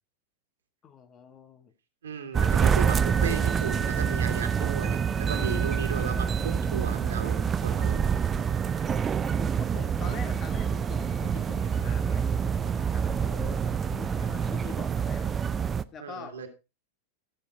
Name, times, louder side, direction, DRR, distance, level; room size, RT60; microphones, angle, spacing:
voice 1, 0.8-1.7 8.8-9.1 9.6-13.6 13.9-15.6 15.9-16.5, left 6 dB, 30° left, 1.3 m, -45 dB
voice 2, 2.0-8.1 10.0-10.2 16.0-16.5, right 6 dB, 65° right, 2.3 m, -35 dB
sound 1, 2.3-15.8, right 7 dB, 20° right, 0.5 m, -27 dB
sound 2, 2.7-14.8, right 1 dB, 80° left, 7.0 m, -46 dB
15.0 x 7.2 x 4.2 m
figure-of-eight pair, 90°, 0 cm